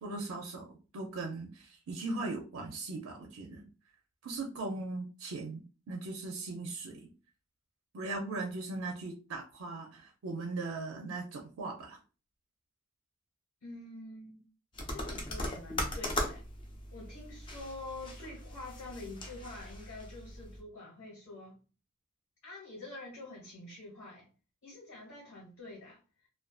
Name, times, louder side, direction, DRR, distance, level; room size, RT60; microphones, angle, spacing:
voice 1, 0.0-3.6 4.2-7.0 7.9-12.0, right 3 dB, 85° right, 1 dB, 0.4 m, -39 dB
voice 2, 13.6-14.4 14.9-16.4 16.9-21.6 22.4-24.3 24.6-26.3, left 2 dB, 75° left, -5 dB, 1.3 m, -46 dB
sound 1, 14.7-20.6, left 1 dB, 25° left, 0.4 m, -39 dB
2.4 x 2.2 x 2.3 m, 0.34 s
head